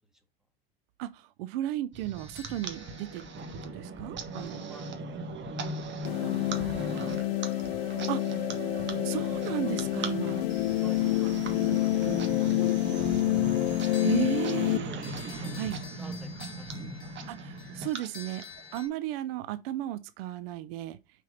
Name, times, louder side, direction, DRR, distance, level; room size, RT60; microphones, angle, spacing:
voice 1, 1.0-3.2 3.5-4.6 8.1-8.5 9.0-10.4 14.0-14.9 15.5-15.8 17.3-18.4 18.7-21.0, right 13 dB, 65° right, 0.7 m, -34 dB
sound 1, 1.9-18.8, right 3 dB, 35° right, 1.7 m, -38 dB
sound 2, 2.2-4.4 13.7-18.9, left 4 dB, 45° left, 3.9 m, -49 dB
voice 2, 4.3-5.2 5.7-7.4 7.7-8.1 8.6-8.8 10.8-12.6 13.0-13.6 14.1-15.0 15.4-15.6 16.0-17.0, equal, ahead, 2.0 m, -51 dB
sound 3, 6.0-14.8, left 17 dB, 80° left, 0.6 m, -28 dB
6.0 x 4.6 x 5.1 m
hypercardioid pair, 85°, 30 cm